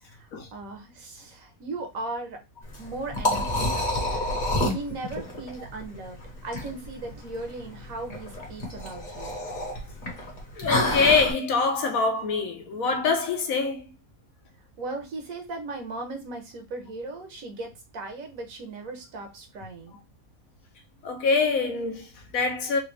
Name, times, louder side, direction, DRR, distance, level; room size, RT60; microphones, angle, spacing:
voice 1, 0.0-2.4 2.8-4.4 4.7-9.4 14.8-20.0, right 2 dB, 65° right, 1.3 m, -37 dB
Liquid, 2.6-11.3, left 1 dB, 35° left, 1.2 m, -29 dB
voice 2, 10.6-13.9 21.0-22.8, left 4 dB, 70° left, 1.2 m, -24 dB
4.1 x 2.4 x 3.2 m
omnidirectional pair, 1.6 m